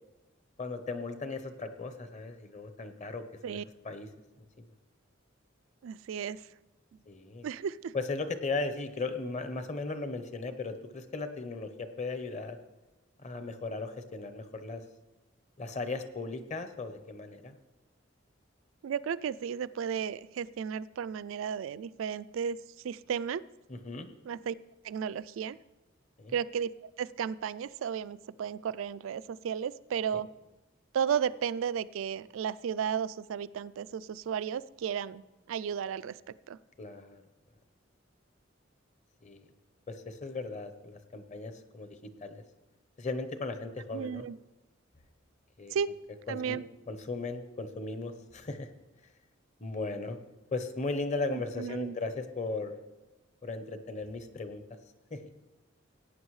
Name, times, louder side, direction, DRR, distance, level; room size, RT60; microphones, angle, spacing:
voice 1, 0.6-3.6 3.8-4.1 7.1-7.5 7.9-12.6 13.2-14.8 15.6-17.5 23.7-24.1 26.2-26.3 30.1-30.2 36.8-37.2 39.2-39.4 39.9-42.0 42.2-42.4 43.0-44.3 45.6-45.7 46.3-46.6 46.9-48.7 49.6-50.2 50.5-52.8 53.4-54.6 55.1-55.2, left 3 dB, 35° left, 9 dB, 0.8 m, -37 dB
voice 2, 5.8-6.4 7.4-7.9 18.8-22.6 22.8-23.4 24.3-24.5 24.8-25.6 26.3-30.3 30.9-35.2 35.5-36.2 36.5-36.6 43.9-44.4 45.7-45.9 46.3-46.6 51.3-52.0, right 7 dB, 90° right, 18 dB, 0.3 m, -34 dB
17.5 x 9.0 x 3.2 m, 1.1 s
head